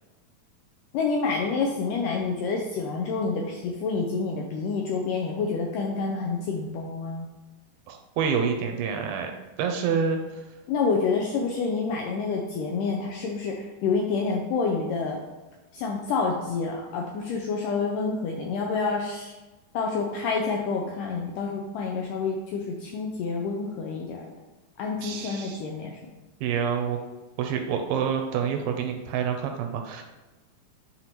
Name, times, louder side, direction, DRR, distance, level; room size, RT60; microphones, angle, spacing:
voice 1, 0.9-7.3 10.7-15.2 15.7-19.4 19.7-24.3 24.8-26.0, left 4 dB, 80° left, 0 dB, 1.9 m, -28 dB
voice 2, 7.9-9.3 9.6-10.2 25.0-25.6 26.4-27.0 27.4-30.0, right 7 dB, 80° right, 4 dB, 2.2 m, -27 dB
9.4 x 4.2 x 3.0 m, 1.1 s
omnidirectional pair, 4.4 m